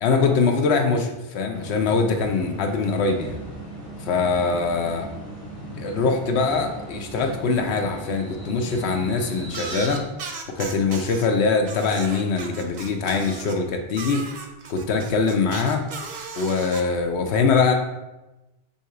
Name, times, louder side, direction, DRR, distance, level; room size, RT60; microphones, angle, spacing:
voice 1, 0.0-3.4 4.1-5.0 5.7-10.0 10.6-14.2 14.7-15.8 16.4-17.7, left 4 dB, 85° left, 4 dB, 0.9 m, -23 dB
sound 1, 1.5-10.0, right 1 dB, 15° left, 1.0 m, -38 dB
sound 2, 9.5-11.3 11.6-13.6 13.9-16.8, right 4 dB, 55° right, 0.6 m, -36 dB
3.6 x 2.8 x 4.7 m, 1.0 s
omnidirectional pair, 1.1 m